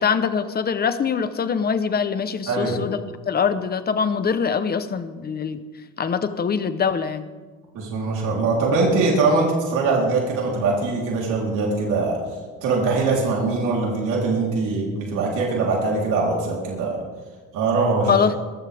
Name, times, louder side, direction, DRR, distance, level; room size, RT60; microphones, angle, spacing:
voice 1, 0.0-5.6 6.0-7.3 18.1-18.3, left 6 dB, 30° left, 11 dB, 1.0 m, -23 dB
voice 2, 2.5-2.8 7.7-12.2 12.6-17.0 17.5-18.1, right 3 dB, 85° right, -3 dB, 3.9 m, -22 dB
23.0 x 14.5 x 3.6 m, 1.4 s
cardioid pair, 135°, 30 cm